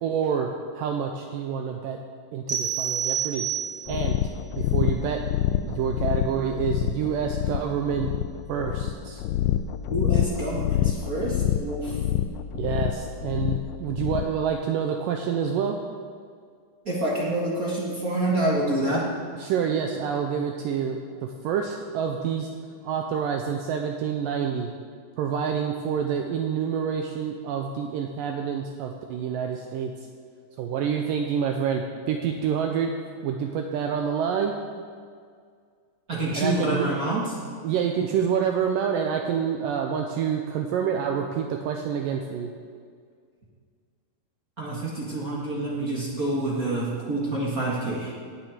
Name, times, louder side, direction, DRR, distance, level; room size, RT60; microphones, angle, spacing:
voice 1, 0.0-2.0 2.3-3.5 3.9-4.2 4.6-5.2 5.6-8.1 8.5-9.2 12.5-15.8 19.4-21.0 21.4-22.5 22.8-24.7 25.2-29.9 30.6-32.9 33.2-34.5 36.3-36.9 37.6-42.5, right 7 dB, 80° right, 3 dB, 2.0 m, -27 dB
sound 1, 2.5-4.0, right 8 dB, 30° right, 1.1 m, -28 dB
sound 2, 3.9-14.4, left 11 dB, 80° left, 2.2 m, -27 dB
voice 2, 9.9-11.9 16.8-19.1 36.1-37.4 44.6-48.1, right 1 dB, 55° right, -5 dB, 0.9 m, -27 dB
17.0 x 9.2 x 5.0 m, 2.1 s
omnidirectional pair, 4.6 m